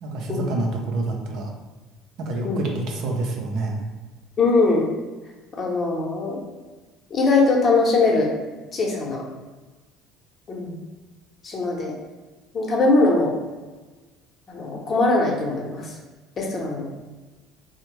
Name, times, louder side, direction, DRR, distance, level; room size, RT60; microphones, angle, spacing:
voice 1, 0.0-1.5 2.2-3.9, right 2 dB, 60° right, 0 dB, 0.6 m, -27 dB
voice 2, 4.4-4.9 5.6-6.4 7.1-8.3 8.7-9.2 10.5-10.8 11.4-11.9 12.5-13.3 14.5-15.9 16.4-16.9, left 3 dB, 40° left, -1 dB, 0.8 m, -21 dB
3.4 x 2.1 x 3.0 m, 1.3 s
hypercardioid pair, 65°, 0 cm